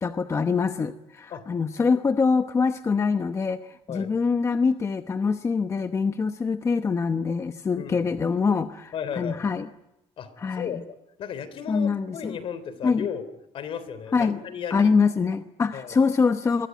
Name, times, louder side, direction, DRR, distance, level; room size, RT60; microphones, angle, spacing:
voice 1, 0.0-9.7 10.4-10.8 11.7-12.4 12.8-13.1 14.1-14.4 14.7-16.7, left 5 dB, 25° left, 8 dB, 1.0 m, -24 dB
voice 2, 7.8-8.1 8.9-9.4 10.2-10.8 11.2-13.3 13.5-14.9 15.7-16.0, left 7 dB, 60° left, 14 dB, 3.5 m, -34 dB
26.5 x 23.0 x 9.3 m, 0.89 s
cardioid pair, 145°, 11 cm